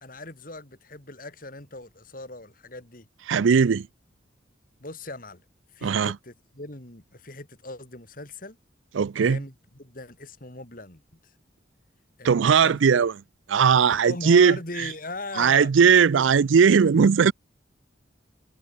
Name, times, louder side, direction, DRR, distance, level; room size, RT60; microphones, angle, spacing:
voice 1, 0.0-3.1 4.8-5.4 5.7-8.6 9.2-11.3 12.2-12.8 13.9-15.7, left 2 dB, 45° left, 3.4 m, -39 dB
voice 2, 3.3-3.9 5.8-6.1 8.9-9.4 12.2-13.1 13.5-14.6 15.4-17.3, right 6 dB, 80° right, 0.4 m, -18 dB
head